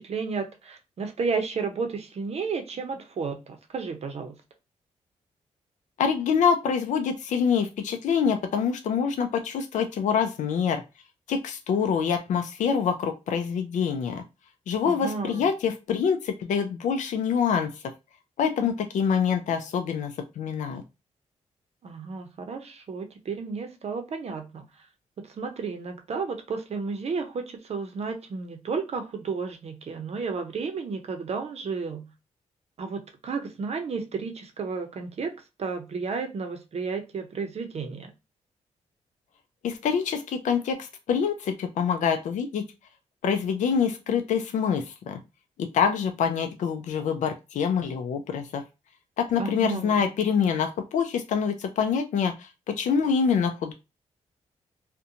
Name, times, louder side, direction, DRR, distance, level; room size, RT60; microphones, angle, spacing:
voice 1, 0.0-4.4 14.9-15.5 21.8-24.8 25.2-32.1 32.8-35.3 35.6-38.1 49.4-50.1, right 4 dB, 55° right, 0.6 m, -32 dB
voice 2, 6.0-10.8 11.3-14.2 14.7-17.7 18.4-20.8 39.6-42.6 43.2-45.2 45.6-48.6 49.2-53.7, left 6 dB, 75° left, 0.4 m, -25 dB
2.5 x 2.1 x 2.7 m
cardioid pair, 65°, 13 cm